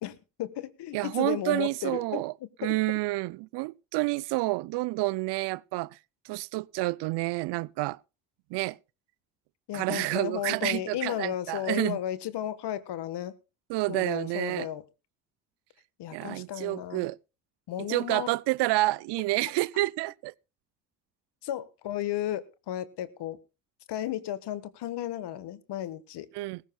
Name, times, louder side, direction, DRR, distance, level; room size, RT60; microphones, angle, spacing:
voice 1, 0.0-2.2 2.6-2.8 9.7-13.3 13.9-14.8 16.0-17.1 17.7-18.3 21.4-23.4 23.9-26.3, left 12 dB, 75° left, 1.3 m, -34 dB
voice 2, 0.9-2.3 2.6-6.0 6.3-8.0 8.5-8.8 9.7-12.0 13.7-14.7 16.1-17.2 17.8-20.3 26.3-26.6, right 21 dB, 80° right, 0.5 m, -29 dB
18.0 x 15.5 x 2.2 m
supercardioid pair, 55°, 41 cm